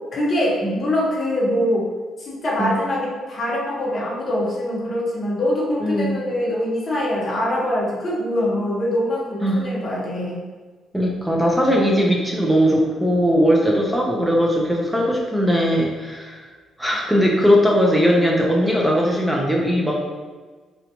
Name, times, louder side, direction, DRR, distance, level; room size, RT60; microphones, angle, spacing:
voice 1, 0.1-1.9 2.2-10.4, left 1 dB, 30° left, -5 dB, 0.8 m, -23 dB
voice 2, 5.8-6.1 9.4-9.7 10.9-16.4 16.8-19.9, equal, 5° right, -2 dB, 0.3 m, -19 dB
3.8 x 2.1 x 2.8 m, 1.4 s
cardioid pair, 170°, 0 cm